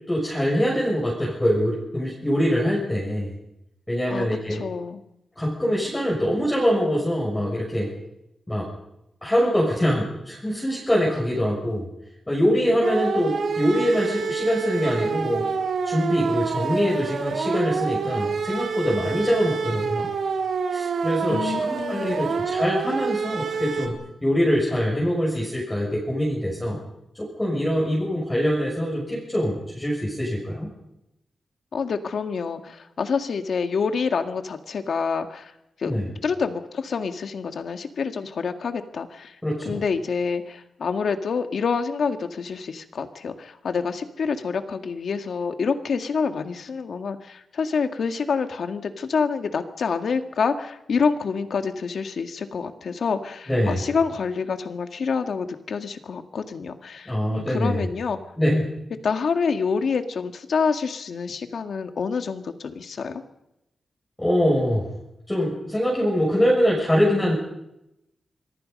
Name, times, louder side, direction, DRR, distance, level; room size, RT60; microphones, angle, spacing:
voice 1, 0.1-3.3 3.9-4.6 5.4-7.9 8.5-8.7 9.2-11.9 12.3-15.4 15.8-20.1 20.7-24.0 24.2-26.8 27.1-30.7 35.9-36.0 39.4-39.8 53.5-53.8 57.1-57.8 58.4-58.7 64.2-64.9 65.3-67.4, equal, 10° left, -4 dB, 6.6 m, -23 dB
voice 2, 4.1-5.0 21.3-22.3 31.7-35.5 35.8-35.9 36.2-39.4 39.6-58.2 59.0-63.2, left 5 dB, 65° left, 7 dB, 2.0 m, -27 dB
sound 1, 12.8-23.9, right 5 dB, 70° right, 3.7 m, -27 dB
26.0 x 23.0 x 5.4 m, 0.85 s
wide cardioid pair, 145°, 0 cm